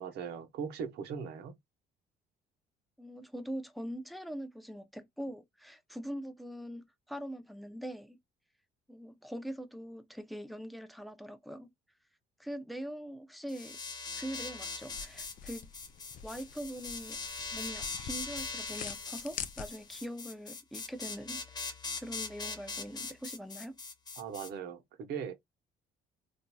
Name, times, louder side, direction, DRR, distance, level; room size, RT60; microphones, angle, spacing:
voice 1, 0.0-1.6 24.2-25.3, right 7 dB, 80° right, 1.0 m, -39 dB
voice 2, 3.0-8.2 8.9-11.7 12.4-13.8 14.1-15.7 16.2-17.2 17.5-23.8, equal, ahead, 0.5 m, -42 dB
sound 1, 13.5-24.5, left 4 dB, 25° left, 0.9 m, -41 dB
sound 2, 14.8-20.1, left 8 dB, 50° left, 0.5 m, -46 dB
4.2 x 2.6 x 2.3 m
cardioid pair, 110°, 17 cm